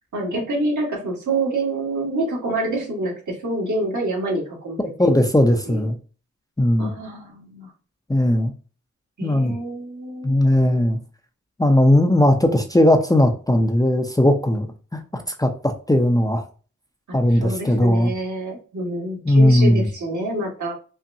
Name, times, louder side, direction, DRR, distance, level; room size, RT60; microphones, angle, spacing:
voice 1, 0.1-5.1 5.7-5.9 6.8-7.7 9.2-10.3 17.1-20.7, right 2 dB, 65° right, -1 dB, 1.6 m, -27 dB
voice 2, 5.0-6.0 6.6-6.9 8.1-8.5 9.2-9.5 10.2-11.0 11.6-14.7 14.9-16.4 17.1-18.1 19.3-19.9, left 1 dB, 10° left, 4 dB, 0.6 m, -18 dB
5.5 x 2.2 x 2.6 m, 0.37 s
cardioid pair, 55°, 32 cm